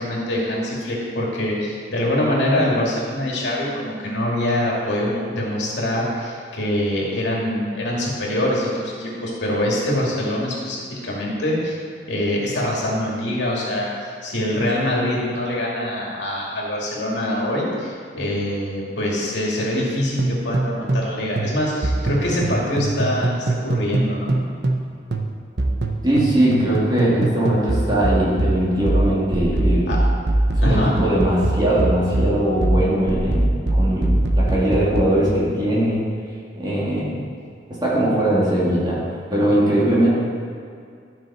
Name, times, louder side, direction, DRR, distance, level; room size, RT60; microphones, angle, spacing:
voice 1, 0.0-11.8 12.1-24.4 29.9-30.0 30.6-30.9, left 1 dB, 75° left, -4 dB, 2.5 m, -24 dB
sound 1, 20.2-21.1 21.4-24.8 25.1-35.2, right 2 dB, 65° right, 0.8 m, -22 dB
voice 2, 26.0-29.9 30.6-36.0 36.6-37.1 37.8-39.0 39.3-40.1, right 1 dB, 25° right, -7 dB, 2.6 m, -20 dB
12.5 x 6.3 x 4.4 m, 2.3 s
head